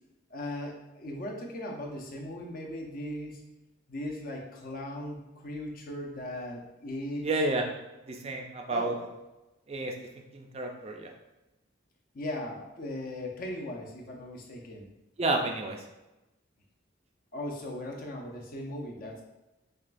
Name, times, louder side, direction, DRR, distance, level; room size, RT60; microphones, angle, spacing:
voice 1, 0.3-3.4 3.9-7.3 8.7-9.1 12.1-14.9 17.3-19.2, left 1 dB, 45° left, 0 dB, 0.6 m, -38 dB
voice 2, 7.2-7.6 8.1-8.9 9.7-9.9 10.3-11.1 15.2-15.8, right 2 dB, 30° right, 2 dB, 0.4 m, -30 dB
6.2 x 2.3 x 2.5 m, 1.0 s
head